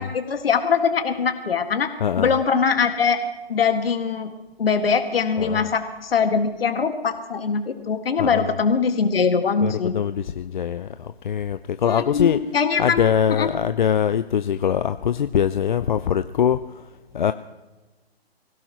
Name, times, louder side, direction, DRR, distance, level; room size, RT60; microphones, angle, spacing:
voice 1, 0.0-1.9 2.2-3.2 3.5-4.3 4.6-9.9 11.8-13.5, left 6 dB, 65° left, 7 dB, 2.0 m, -22 dB
voice 2, 2.0-2.4 5.4-5.7 8.2-8.5 9.6-12.4 12.8-16.6 17.1-17.3, left 8 dB, 50° left, 11 dB, 0.5 m, -22 dB
25.0 x 16.5 x 3.0 m, 1.2 s
hypercardioid pair, 145°, 31 cm